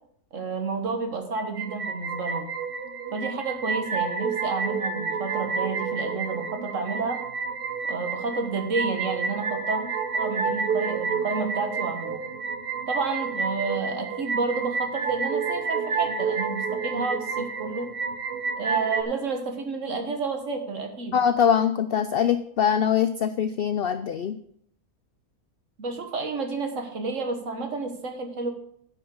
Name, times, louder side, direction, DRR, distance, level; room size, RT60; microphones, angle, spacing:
voice 1, 0.3-2.5 3.1-7.2 7.9-9.8 10.1-12.2 12.9-17.9 18.6-21.2 25.8-28.5, right 4 dB, 60° right, 5 dB, 1.7 m, -30 dB
sound 1, 1.4-19.0, right 5 dB, 45° right, 1.1 m, -29 dB
voice 2, 21.1-24.4, left 8 dB, 70° left, 11 dB, 0.5 m, -23 dB
9.4 x 5.5 x 7.0 m, 0.68 s
omnidirectional pair, 1.5 m